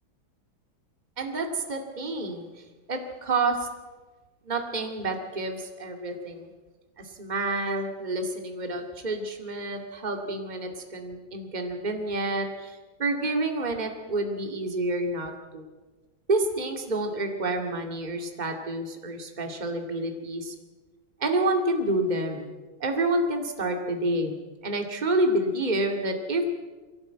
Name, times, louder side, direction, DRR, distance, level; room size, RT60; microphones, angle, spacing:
voice 1, 1.2-3.7 4.4-6.5 7.0-15.7 16.3-20.6 21.2-22.5 22.8-24.4 24.6-26.4, right 2 dB, 20° right, 4 dB, 2.3 m, -29 dB
23.0 x 17.5 x 9.0 m, 1.3 s
omnidirectional pair, 2.2 m